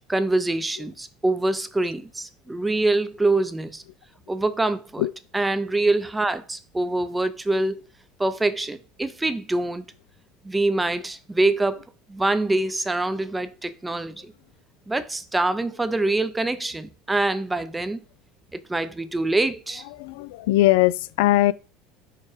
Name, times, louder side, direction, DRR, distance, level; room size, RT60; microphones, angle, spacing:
voice 1, 0.1-3.8 4.3-5.0 5.3-7.8 8.2-9.9 10.4-11.8 12.1-14.3 14.9-18.0 18.5-19.8, right 2 dB, 10° right, 0.5 m, -25 dB
voice 2, 20.0-21.5, left 16 dB, 75° left, 0.3 m, -20 dB
4.8 x 4.5 x 4.9 m
cardioid pair, 150°, 0 cm